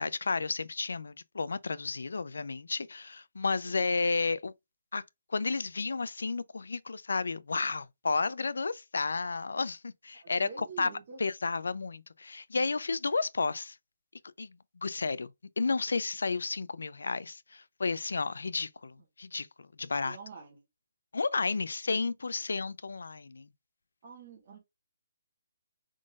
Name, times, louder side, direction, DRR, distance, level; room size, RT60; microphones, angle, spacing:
voice 1, 0.0-4.5 4.9-5.0 5.3-10.9 11.2-13.8 14.4-14.6 14.8-20.2 21.1-23.5, left 4 dB, 85° left, 0.4 m, -32 dB
voice 2, 10.2-11.2 20.0-20.6 24.0-24.6, right 5 dB, 35° right, 1.4 m, -47 dB
5.1 x 3.7 x 2.3 m
hypercardioid pair, 170°, 0 cm